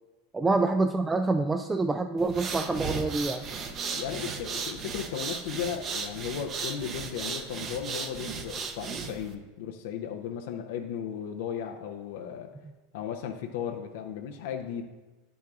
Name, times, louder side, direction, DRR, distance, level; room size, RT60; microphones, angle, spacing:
voice 1, 0.3-3.4, right 3 dB, 15° right, 7 dB, 0.3 m, -26 dB
sound 1, 2.2-9.3, right 5 dB, 40° right, 0.8 m, -36 dB
voice 2, 3.9-12.5 12.9-14.8, left 8 dB, 70° left, 3 dB, 0.5 m, -36 dB
9.2 x 7.0 x 2.4 m, 1.2 s
hypercardioid pair, 100°, 0 cm